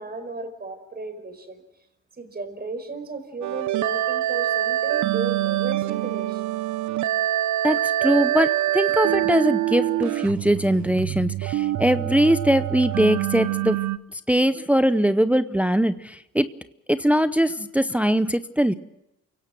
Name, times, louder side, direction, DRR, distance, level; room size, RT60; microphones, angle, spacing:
voice 1, 0.0-1.6 2.2-6.4, right 3 dB, 30° right, 8 dB, 5.1 m, -34 dB
sound 1, 3.4-14.0, right 13 dB, 75° right, 0.9 m, -25 dB
voice 2, 7.6-13.8 14.1-16.5 16.9-18.7, equal, 5° right, 12 dB, 0.7 m, -21 dB
29.0 x 17.5 x 6.0 m, 0.86 s
cardioid pair, 90°, 30 cm